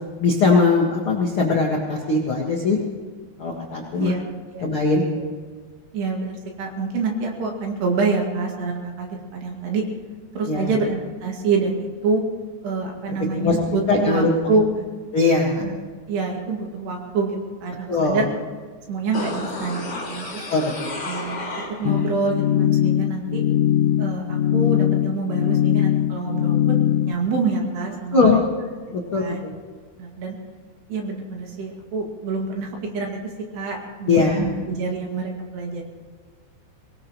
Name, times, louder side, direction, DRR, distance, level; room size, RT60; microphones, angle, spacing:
voice 1, 0.2-2.8 3.4-4.1 4.6-5.0 10.4-10.7 13.3-13.6 13.9-14.3 15.1-15.6 17.9-18.2 20.5-20.9 28.1-28.4 28.9-29.5 34.1-34.4, left 3 dB, 75° left, -2 dB, 1.2 m, -20 dB
voice 2, 5.9-9.8 10.4-12.2 12.6-14.9 15.6-15.8 16.1-18.3 18.9-20.4 21.1-21.4 21.8-23.4 24.0-28.3 29.2-29.4 30.0-30.4 30.9-33.2 33.5-35.8, right 4 dB, 70° right, 0 dB, 4.1 m, -26 dB
sound 1, 19.1-22.1 22.5-22.6, left 2 dB, 25° left, 3.1 m, -32 dB
sound 2, 21.8-27.1, left 11 dB, 90° left, 3.0 m, -20 dB
24.0 x 19.0 x 3.1 m, 1.5 s
omnidirectional pair, 5.2 m